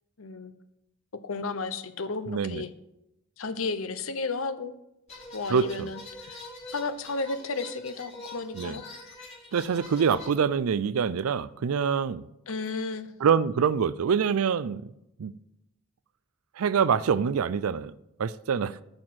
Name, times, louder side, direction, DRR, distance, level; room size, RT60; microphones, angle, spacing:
voice 1, 0.2-0.5 1.1-2.7 3.4-4.8 5.3-6.4 6.7-8.8 12.5-13.1, left 3 dB, 75° left, 0.8 m, -33 dB
voice 2, 2.3-2.6 5.5-5.9 8.5-8.8 9.5-12.3 13.2-14.9 15.2-15.3 16.6-17.9 18.2-18.8, right 6 dB, 85° right, 0.4 m, -25 dB
sound 1, 5.1-10.3, left 2 dB, 30° left, 4.2 m, -44 dB
8.8 x 6.2 x 7.6 m
head